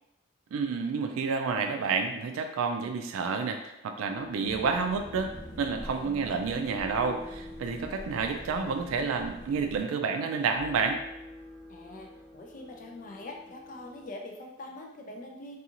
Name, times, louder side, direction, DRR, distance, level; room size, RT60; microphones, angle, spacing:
voice 1, 0.5-11.0, right 5 dB, 90° right, 5 dB, 0.3 m, -30 dB
sound 1, 4.0-14.1, left 1 dB, 30° right, 0.9 m, -49 dB
sound 2, 4.4-9.8, equal, 70° left, 0.8 m, -45 dB
voice 2, 11.7-12.1 12.3-15.6, left 2 dB, 40° left, 1 dB, 0.4 m, -43 dB
2.5 x 2.3 x 2.8 m, 0.86 s
head